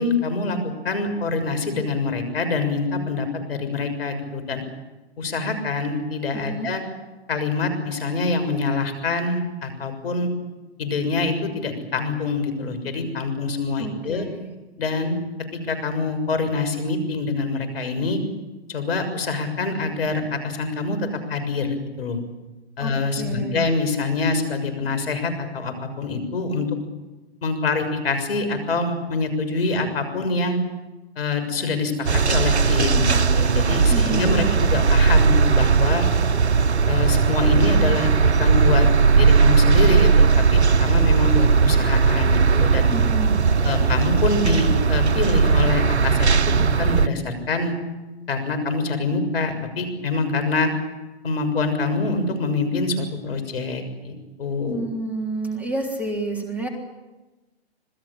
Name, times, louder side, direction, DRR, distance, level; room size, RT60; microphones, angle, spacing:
voice 1, 0.0-4.6 5.2-6.8 7.3-10.3 10.8-14.3 14.8-15.2 15.5-18.2 18.7-22.2 22.8-26.7 27.4-30.6 31.2-36.1 36.9-38.9 39.2-42.9 43.6-47.7 48.3-50.7 51.2-54.8, left 3 dB, 65° left, 8 dB, 6.7 m, -25 dB
voice 2, 6.3-6.7 13.8-14.5 22.8-23.6 33.9-34.6 42.9-43.4 54.7-56.7, right 2 dB, 5° right, 0 dB, 3.6 m, -29 dB
sound 1, 32.1-47.1, right 5 dB, 90° right, 0.8 m, -18 dB
27.0 x 20.5 x 8.8 m, 1.1 s
figure-of-eight pair, 125°, 32 cm